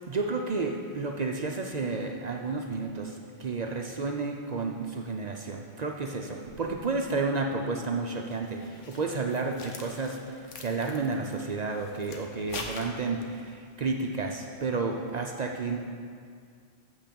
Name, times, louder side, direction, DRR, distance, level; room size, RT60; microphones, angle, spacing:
voice 1, 0.1-15.9, right 3 dB, 50° right, 2 dB, 0.5 m, -31 dB
sound 1, 8.3-13.4, left 3 dB, 90° left, 1.2 m, -44 dB
7.2 x 5.8 x 6.9 m, 2.2 s
omnidirectional pair, 1.2 m